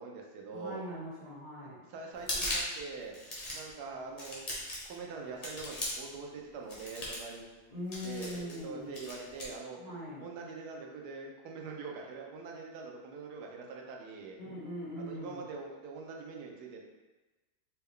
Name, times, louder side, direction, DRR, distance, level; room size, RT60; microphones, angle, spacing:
voice 1, 0.0-0.8 1.6-3.2 3.5-4.5 4.8-7.5 8.0-9.8 10.2-14.4 15.0-16.8, right 4 dB, 75° right, 0 dB, 1.0 m, -44 dB
voice 2, 0.5-1.8 7.7-9.0 9.8-10.2 14.4-15.4, left 1 dB, 25° right, -9 dB, 1.2 m, -41 dB
sound 1, 2.1-2.8 3.1-3.7 4.2-4.9 5.4-6.1 6.7-7.3 7.9-8.6 8.9-9.5, left 1 dB, 50° left, 0.4 m, -37 dB
4.3 x 2.2 x 3.5 m, 1.2 s
omnidirectional pair, 2.1 m